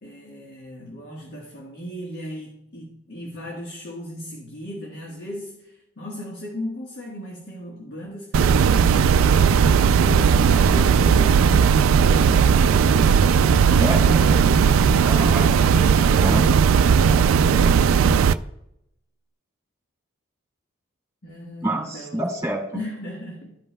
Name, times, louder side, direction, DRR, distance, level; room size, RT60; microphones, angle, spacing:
voice 1, 0.0-9.1 9.4-14.7 21.2-22.3 22.7-23.6, equal, 55° left, -1 dB, 1.4 m, -37 dB
sound 1, 8.3-18.3, right 6 dB, 80° right, 0.3 m, -17 dB
voice 2, 15.0-16.5 21.6-22.6, right 1 dB, 15° right, -1 dB, 2.1 m, -28 dB
13.5 x 5.3 x 2.2 m, 0.81 s
head